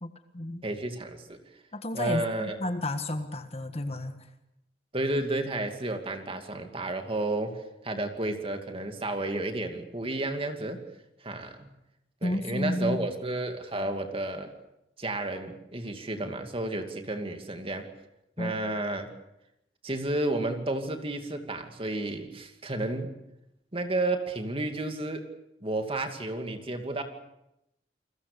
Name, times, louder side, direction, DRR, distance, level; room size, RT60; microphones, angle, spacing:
voice 1, 0.0-0.6 1.7-4.2 12.2-13.0 18.4-18.6, left 1 dB, 35° left, 8 dB, 1.6 m, -32 dB
voice 2, 0.6-1.4 1.9-2.6 4.9-7.5 7.8-10.8 11.2-11.7 12.2-14.5 15.0-17.9 18.4-19.1 19.8-23.1 23.7-25.2 25.6-27.0, right 2 dB, 30° right, 6 dB, 2.5 m, -31 dB
29.0 x 21.0 x 7.0 m, 0.85 s
head